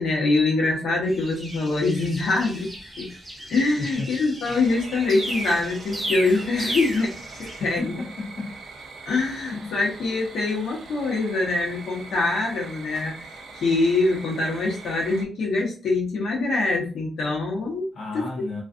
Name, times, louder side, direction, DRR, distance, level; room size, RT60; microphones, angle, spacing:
voice 1, 0.0-2.7 3.0-3.1 3.5-8.0 9.1-13.1 13.5-17.9 18.1-18.3, left 3 dB, 80° left, 0.9 m, -24 dB
sound 1, 1.1-7.8, right 1 dB, 10° right, 0.6 m, -35 dB
voice 2, 3.8-4.1 7.6-8.5 9.4-9.8 17.9-18.6, left 3 dB, 55° left, 0.6 m, -33 dB
sound 2, 4.4-15.2, right 3 dB, 60° right, 0.5 m, -42 dB
2.5 x 2.3 x 2.4 m
wide cardioid pair, 165°, 0 cm